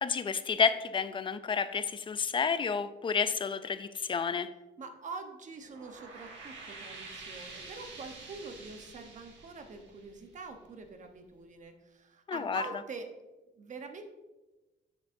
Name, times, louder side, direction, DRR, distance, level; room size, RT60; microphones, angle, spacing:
voice 1, 0.0-4.5 12.3-12.6, left 6 dB, 25° left, 12 dB, 0.4 m, -30 dB
voice 2, 4.8-13.1 13.6-14.0, right 4 dB, 40° right, 6 dB, 0.9 m, -45 dB
sound 1, 5.5-10.8, right 3 dB, 85° right, 1.5 m, -48 dB
7.3 x 7.2 x 2.6 m, 1.1 s
cardioid pair, 125°, 19 cm